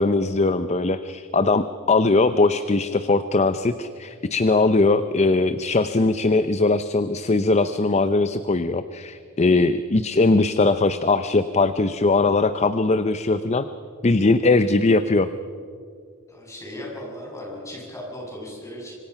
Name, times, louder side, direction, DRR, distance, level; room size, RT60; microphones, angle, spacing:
voice 1, 0.0-13.7 14.0-15.3, left 3 dB, 30° left, 12 dB, 0.6 m, -20 dB
voice 2, 16.3-18.9, left 1 dB, 15° left, -3 dB, 7.5 m, -37 dB
26.0 x 24.5 x 5.8 m, 2.3 s
head